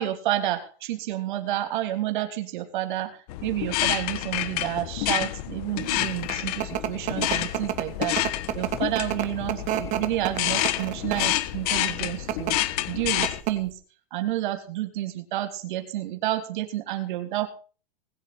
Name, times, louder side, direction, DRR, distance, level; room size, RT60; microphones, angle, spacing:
voice 1, 0.0-8.2 8.5-12.6 12.9-13.7 14.1-17.5, right 14 dB, 55° right, 7 dB, 3.2 m, -30 dB
sound 1, 3.3-13.4, left 15 dB, 40° left, 1.3 m, -29 dB
sound 2, 6.0-11.4 12.1-12.5 12.9-13.0 13.2-13.7, right 12 dB, 25° right, 1.7 m, -29 dB
20.5 x 7.8 x 5.6 m, 0.38 s
supercardioid pair, 170°, 29 cm